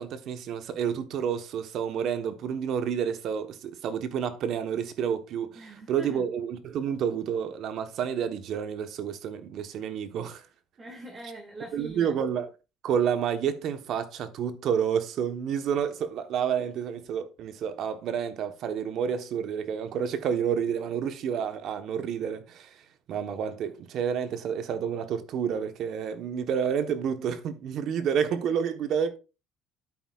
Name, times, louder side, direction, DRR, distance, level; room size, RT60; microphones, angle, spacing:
voice 1, 0.0-10.4 11.7-12.5 12.8-22.8 23.1-29.2, right 8 dB, 60° right, 1.1 m, -29 dB
voice 2, 5.5-6.2 10.8-12.2, right 1 dB, 30° right, 2.0 m, -43 dB
10.0 x 8.4 x 2.4 m
cardioid pair, 105°, 0 cm